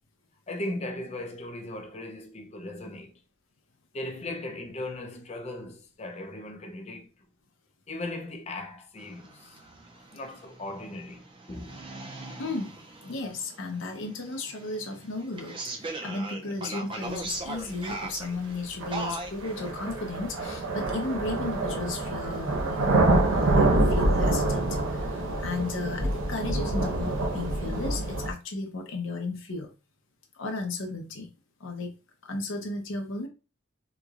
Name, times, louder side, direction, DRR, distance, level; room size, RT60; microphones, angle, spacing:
voice 1, 0.5-3.2 3.9-7.1 7.9-9.6 10.1-11.2 11.5-11.9, left 1 dB, 30° left, 0.5 m, -37 dB
sound 1, 9.0-19.7, right 2 dB, 25° right, 0.4 m, -40 dB
voice 2, 12.4-12.8 13.0-23.0 23.3-29.7 30.3-31.3 31.6-31.9 32.2-33.3, left 3 dB, 70° left, 0.7 m, -34 dB
sound 2, 17.7-17.8 18.8-28.3, right 2 dB, 85° right, 0.9 m, -26 dB
3.7 x 3.0 x 2.4 m
head